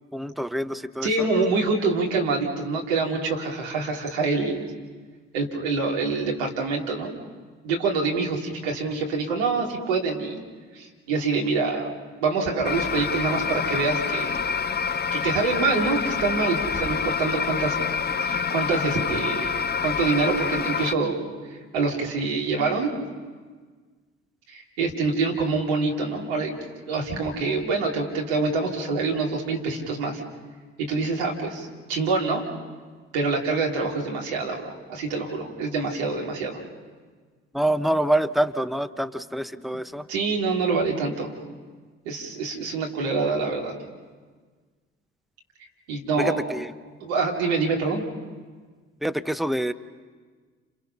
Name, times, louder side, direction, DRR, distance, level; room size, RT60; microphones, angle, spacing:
voice 1, 0.1-1.3 37.5-40.1 46.2-46.7 49.0-49.7, right 1 dB, ahead, 11 dB, 1.0 m, -26 dB
voice 2, 1.0-4.7 5.3-7.1 7.6-10.4 10.7-11.9 12.2-14.4 15.1-17.8 18.2-21.2 21.5-22.9 24.5-26.6 26.9-30.2 30.8-32.5 33.1-36.6 40.1-41.3 42.0-43.7 45.9-46.5 47.0-48.0, right 4 dB, 75° right, -1 dB, 3.0 m, -26 dB
sound 1, 12.6-20.9, left 6 dB, 30° left, 0.8 m, -27 dB
30.0 x 28.0 x 5.7 m, 1.5 s
hypercardioid pair, 45°, 31 cm